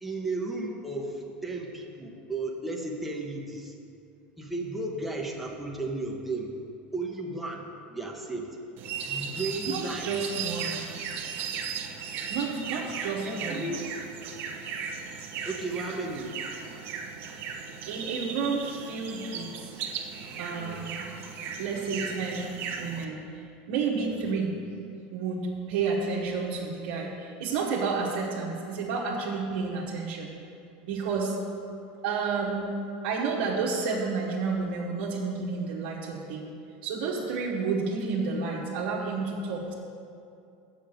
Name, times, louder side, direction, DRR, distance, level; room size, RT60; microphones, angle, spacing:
voice 1, 0.0-3.7 4.4-6.6 6.9-8.5 9.0-10.2 13.2-13.8 15.5-16.4 20.6-20.8 24.1-24.3, right 2 dB, ahead, -2 dB, 1.1 m, -34 dB
sound 1, 8.8-23.0, right 6 dB, 50° right, 1.0 m, -37 dB
voice 2, 9.6-10.8 12.3-13.7 17.9-19.7 20.4-21.1 21.6-22.5 22.8-23.2 23.7-24.5 25.1-30.3 30.8-31.4 32.0-32.6 33.0-36.5 36.8-39.7, right 4 dB, 80° right, -5 dB, 1.4 m, -30 dB
7.3 x 6.9 x 7.8 m, 2.5 s
supercardioid pair, 125°, 5 cm